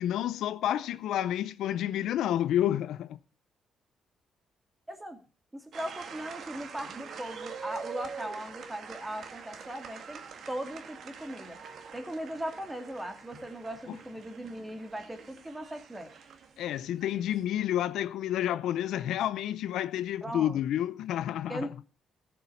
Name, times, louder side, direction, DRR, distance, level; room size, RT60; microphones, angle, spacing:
voice 1, 0.0-3.2 13.9-14.0 16.6-21.7, left 11 dB, 80° left, 0.5 m, -30 dB
voice 2, 4.9-5.2 5.5-10.2 10.5-11.6 11.9-16.1 20.2-20.6 21.5-21.7, right 1 dB, 15° right, 2.4 m, -38 dB
sound 1, 5.7-17.4, right 6 dB, 65° right, 1.9 m, -45 dB
15.0 x 6.7 x 5.5 m
cardioid pair, 90°, 0 cm